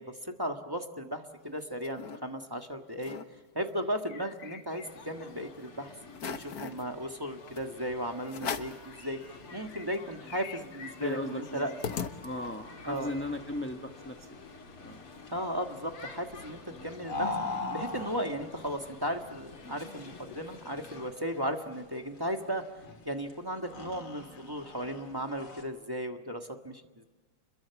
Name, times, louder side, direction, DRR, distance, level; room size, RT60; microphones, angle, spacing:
voice 1, 0.0-3.2 3.5-5.9 6.2-9.2 9.5-11.7 12.8-13.1 15.3-22.6 23.0-27.0, equal, 10° right, 3 dB, 1.4 m, -36 dB
sound 1, 1.4-2.2 2.6-2.7 2.9-3.3 3.7-5.3 5.7-5.8 6.1-6.8 7.6-7.7 8.3-8.9 9.3-9.4 9.7-12.7, left 7 dB, 50° left, 1.5 m, -40 dB
sound 2, 4.8-21.1, left 4 dB, 85° left, 3.5 m, -50 dB
voice 2, 11.0-11.8 12.2-14.3 14.8-15.1 16.7-16.9, left 1 dB, 10° left, 4 dB, 0.9 m, -37 dB
sound 3, 12.2-25.6, left 3 dB, 70° left, 3.6 m, -42 dB
30.0 x 22.0 x 7.1 m, 1.2 s
omnidirectional pair, 2.4 m